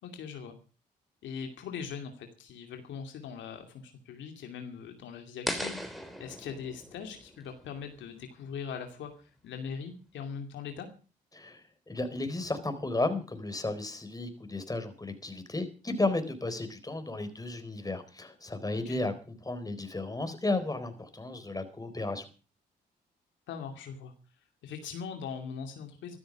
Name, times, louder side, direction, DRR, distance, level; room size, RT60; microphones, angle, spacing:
voice 1, 0.0-0.5 1.2-10.9 18.9-19.0 23.5-24.1 24.6-26.2, left 6 dB, 80° left, 5 dB, 2.5 m, -41 dB
sound 1, 5.5-8.5, equal, ahead, 3.5 m, -39 dB
voice 2, 11.3-22.2, left 2 dB, 20° left, 9 dB, 4.1 m, -34 dB
14.0 x 12.5 x 6.2 m, 0.36 s
supercardioid pair, 60°, 19 cm